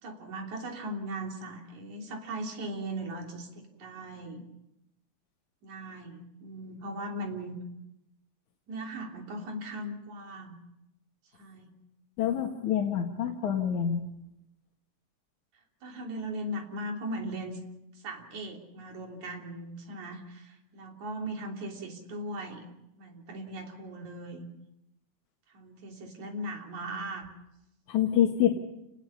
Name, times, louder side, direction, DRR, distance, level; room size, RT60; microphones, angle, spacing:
voice 1, 0.0-4.4 5.6-7.6 8.7-10.6 11.3-11.7 15.8-17.6 17.9-22.7 23.0-24.5 25.5-27.3, right 1 dB, 80° right, 1 dB, 4.6 m, -38 dB
voice 2, 12.2-14.0 27.9-28.5, left 10 dB, 85° left, 1 dB, 3.2 m, -26 dB
30.0 x 19.5 x 5.7 m, 0.86 s
omnidirectional pair, 3.3 m